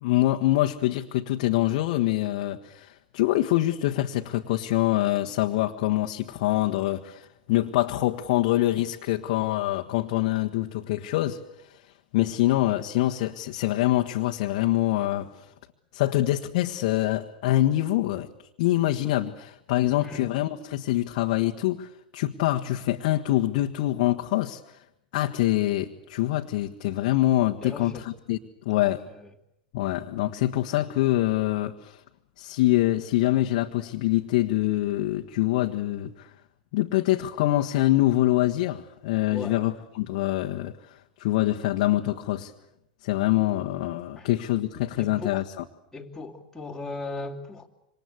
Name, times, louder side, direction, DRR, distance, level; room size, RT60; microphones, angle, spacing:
voice 1, 0.0-11.4 12.1-15.3 15.9-18.3 18.6-24.6 25.1-28.4 28.6-29.0 29.7-32.0 32.4-36.3 36.7-42.5 43.0-45.6, left 15 dB, 55° left, 1.4 m, -25 dB
voice 2, 19.8-20.2 27.6-28.0 28.8-28.9 29.2-29.3 39.3-39.6 44.2-44.3 45.0-45.4 45.9-47.7, left 3 dB, 5° left, 3.0 m, -37 dB
27.0 x 25.5 x 8.2 m
hypercardioid pair, 95°, 5 cm